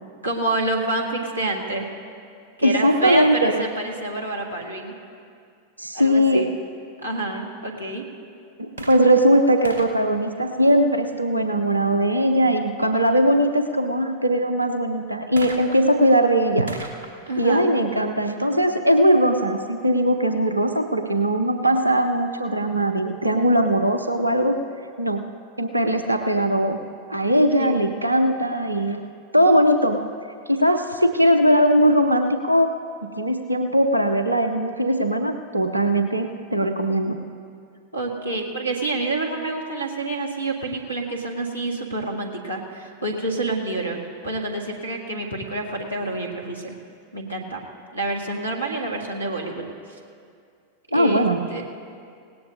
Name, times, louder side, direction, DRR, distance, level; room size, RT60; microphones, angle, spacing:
voice 1, 0.2-1.9 2.6-4.9 5.9-6.5 7.0-8.0 17.3-17.7 27.6-27.9 37.9-44.0 44.2-46.7 47.1-47.6 47.9-49.6 50.9-51.7, right 2 dB, 90° left, 1 dB, 1.7 m, -28 dB
voice 2, 2.6-3.6 5.8-6.5 8.6-16.8 17.4-24.6 25.0-25.3 25.6-26.8 27.1-29.0 29.3-30.0 30.5-32.7 33.0-37.2 50.9-51.4, equal, 85° right, 7 dB, 0.6 m, -20 dB
sound 1, 8.7-11.3 15.4-19.0 19.8-19.9, right 2 dB, 70° right, 1.2 m, -41 dB
18.0 x 17.5 x 2.7 m, 2.3 s
figure-of-eight pair, 90°, 0 cm